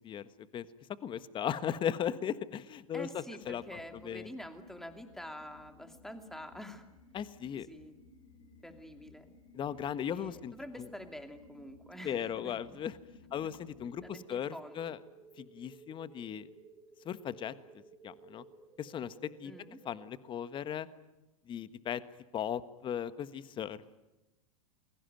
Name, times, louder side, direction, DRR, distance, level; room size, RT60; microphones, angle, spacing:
voice 1, 1.0-3.6 4.0-4.3 7.1-7.7 9.5-10.5 12.0-12.9 13.3-15.0 15.4-16.5 17.0-17.5 18.0-18.4 18.8-19.5 19.8-20.9 21.5-22.0 22.3-24.0, left 9 dB, 25° left, 14 dB, 1.4 m, -37 dB
voice 2, 2.9-6.9 7.5-7.9 8.6-9.3 10.1-12.6 13.4-13.5 14.0-14.8 19.4-19.8, equal, ahead, 6 dB, 2.7 m, -47 dB
sound 1, 3.4-14.2, left 3 dB, 70° left, 3.9 m, -58 dB
sound 2, 13.7-20.1, right 4 dB, 20° right, 4.6 m, -57 dB
28.0 x 22.0 x 9.3 m, 1.0 s
hypercardioid pair, 100°, 18 cm